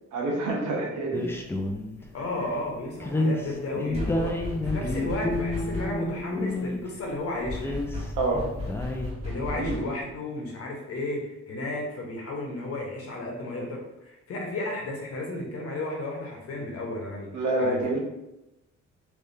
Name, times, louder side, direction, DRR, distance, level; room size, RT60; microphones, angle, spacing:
voice 1, 0.1-1.3 2.4-2.5 8.2-8.5 9.5-9.8 17.3-18.0, right 2 dB, 75° right, -2 dB, 1.0 m, -27 dB
sound 1, 1.1-2.1 3.0-7.0 7.5-9.1, left 2 dB, 10° left, 0.4 m, -30 dB
voice 2, 2.1-7.8 9.2-18.0, left 2 dB, 50° left, 0 dB, 1.0 m, -33 dB
sound 2, 3.9-6.2 7.4-10.1, left 2 dB, 20° right, 1.4 m, -35 dB
3.3 x 3.3 x 2.7 m, 0.93 s
cardioid pair, 90°, 30 cm